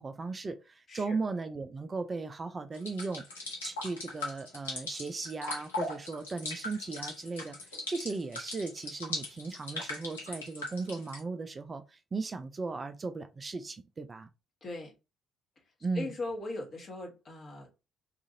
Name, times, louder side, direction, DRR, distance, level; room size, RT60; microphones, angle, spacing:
voice 1, 0.0-3.2 3.6-7.6 7.9-14.3 15.8-16.1, right 3 dB, 30° right, 0.3 m, -37 dB
sound 1, 2.7-11.2, left 2 dB, 80° left, 0.6 m, -39 dB
voice 2, 14.6-14.9 15.9-17.8, left 2 dB, 40° left, 1.0 m, -39 dB
2.7 x 2.5 x 2.6 m
figure-of-eight pair, 45°, 0 cm